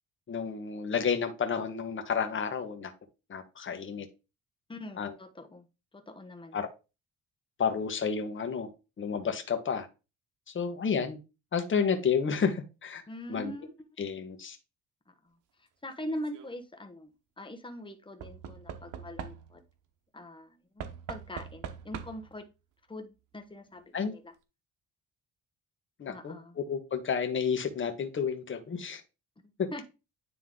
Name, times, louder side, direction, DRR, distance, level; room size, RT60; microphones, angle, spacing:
voice 1, 0.3-2.9 3.3-4.1 5.0-5.1 6.5-6.7 7.6-8.7 9.0-9.9 10.5-11.2 11.5-13.0 13.3-13.5 14.0-14.6 23.9-24.1 26.0-29.0, left 6 dB, 40° left, 1.3 m, -31 dB
voice 2, 4.7-5.7 5.9-6.6 13.1-13.7 15.2-15.3 15.6-19.6 20.1-22.5 22.9-24.3 26.1-26.6 29.4-29.8, left 1 dB, 15° left, 1.2 m, -42 dB
Knock / Wood, 16.0-16.5 18.2-19.7 20.8-22.4 23.4-23.5 23.7-23.8, right 8 dB, 80° right, 1.0 m, -43 dB
9.7 x 3.3 x 3.8 m
cardioid pair, 90°, 30 cm